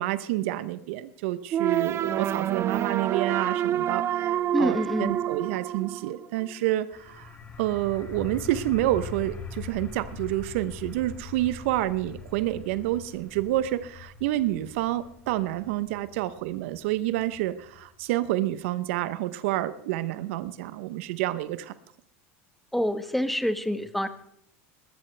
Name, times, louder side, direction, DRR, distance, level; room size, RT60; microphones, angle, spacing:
voice 1, 0.0-21.7, right 15 dB, 70° right, 14 dB, 0.8 m, -28 dB
sound 1, 1.5-6.5, right 11 dB, 40° right, 0.6 m, -28 dB
voice 2, 4.5-5.1 22.7-24.1, equal, ahead, 10 dB, 1.2 m, -26 dB
sound 2, 6.9-18.4, left 5 dB, 25° left, 2.2 m, -42 dB
21.0 x 12.0 x 3.3 m, 0.69 s
supercardioid pair, 105°, 7 cm